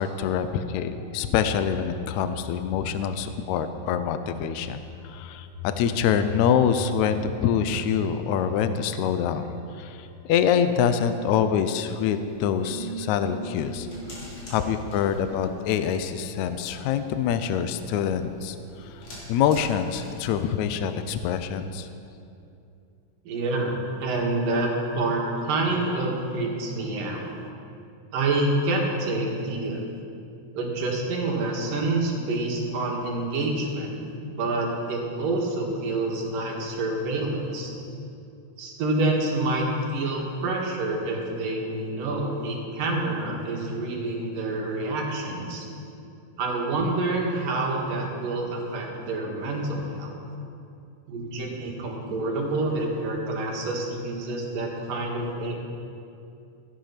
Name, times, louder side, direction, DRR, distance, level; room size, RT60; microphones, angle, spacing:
voice 1, 0.0-9.5 9.7-13.9 14.5-19.0 19.3-21.9, left 8 dB, 90° left, 10 dB, 1.6 m, -25 dB
sound 1, 1.0-19.2, equal, 20° right, 3.6 m, -41 dB
sound 2, 11.6-21.5, left 1 dB, 50° left, 4.5 m, -48 dB
voice 2, 23.2-27.3 28.1-29.8 30.5-34.0 34.3-37.7 38.6-39.7 39.9-45.7 46.4-50.2 51.1-55.5, right 2 dB, 75° right, -1 dB, 3.4 m, -27 dB
15.0 x 10.5 x 5.8 m, 2.6 s
omnidirectional pair, 4.0 m